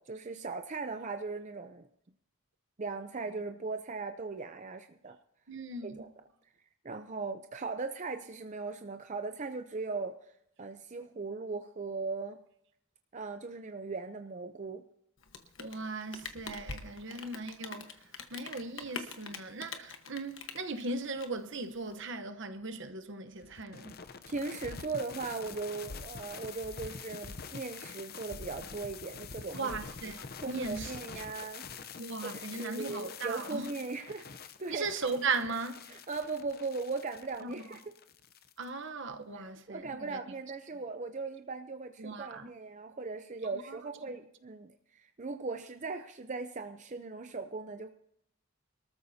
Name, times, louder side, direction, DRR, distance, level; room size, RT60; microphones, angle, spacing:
voice 1, 0.0-1.9 2.8-5.2 5.8-6.1 6.8-10.2 10.6-12.4 13.1-14.8 24.3-29.8 30.4-31.7 32.2-34.2 34.6-34.9 35.9-37.8 39.4-47.9, right 4 dB, 35° right, 0.6 m, -38 dB
voice 2, 5.5-6.1 15.6-17.9 18.3-24.0 29.5-30.9 32.0-33.7 34.7-35.8 37.4-37.7 38.6-40.2 42.0-42.5 43.6-43.8, right 3 dB, 60° right, 1.0 m, -38 dB
Rain, 15.2-22.0, left 5 dB, 65° left, 1.3 m, -45 dB
sound 1, 23.4-38.7, left 5 dB, 45° left, 0.7 m, -46 dB
23.5 x 13.5 x 2.8 m
head